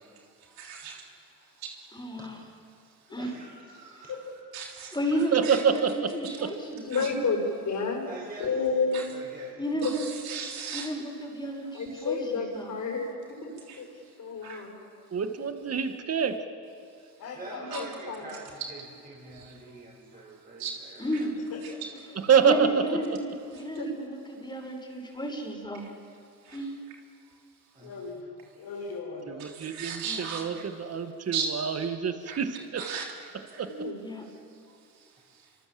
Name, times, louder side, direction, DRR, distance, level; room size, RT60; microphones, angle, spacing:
voice 1, 0.6-1.1 1.6-1.8 2.8-3.1 3.9-4.1 4.5-5.0 5.4-5.6 6.2-6.4 6.9-7.1 8.9-9.0 9.8-10.9 11.7-12.1 13.7-14.2 14.4-14.7 17.7-17.8 19.3-19.6 20.2-20.3 20.6-21.2 21.6-21.7 23.5-23.6 26.4-26.6 27.3-27.4 29.4-30.6 31.3-31.8 32.2-32.4 32.8-33.3 33.5-33.6 34.5-35.5, right 6 dB, 85° right, 0 dB, 3.4 m, -38 dB
voice 2, 1.9-2.4 3.1-3.3 4.9-7.1 9.6-10.0 10.7-12.7 17.6-17.7 21.0-21.4 22.4-25.9 26.5-26.7 30.0-30.2 34.0-34.2, equal, 10° left, 1 dB, 5.9 m, -33 dB
voice 3, 3.2-4.6 8.1-8.5 9.1-9.6 17.0-21.3 27.7-27.9 35.1-35.3, right 2 dB, 25° right, -4 dB, 6.7 m, -46 dB
voice 4, 5.3-6.1 6.4-6.5 15.1-16.4 22.2-22.8 23.1-23.2 29.3-32.8 33.6-33.7, right 7 dB, 45° right, 8 dB, 1.8 m, -26 dB
voice 5, 6.5-8.0 8.4-9.0 9.8-9.9 11.7-13.1 13.4-13.5 13.8-13.9 14.2-14.7 17.6-18.3 23.7-23.9 33.6-34.0, left 4 dB, 55° left, 1 dB, 7.4 m, -30 dB
voice 6, 17.2-17.7 27.8-28.2 28.6-29.5, left 4 dB, 70° left, -4 dB, 5.7 m, -40 dB
26.5 x 25.5 x 7.7 m, 2.4 s
cardioid pair, 85°, 36 cm